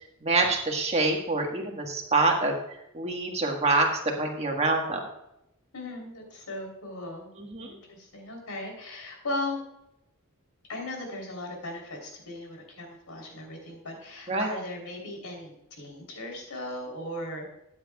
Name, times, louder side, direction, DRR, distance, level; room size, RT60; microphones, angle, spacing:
voice 1, 0.2-2.6 2.9-5.0 7.5-7.7 14.3-14.5, right 3 dB, 30° right, 1 dB, 1.5 m, -26 dB
voice 2, 5.7-7.3 7.6-9.6 10.7-17.5, left 1 dB, 85° left, 1 dB, 3.5 m, -37 dB
13.5 x 9.8 x 2.3 m, 0.85 s
head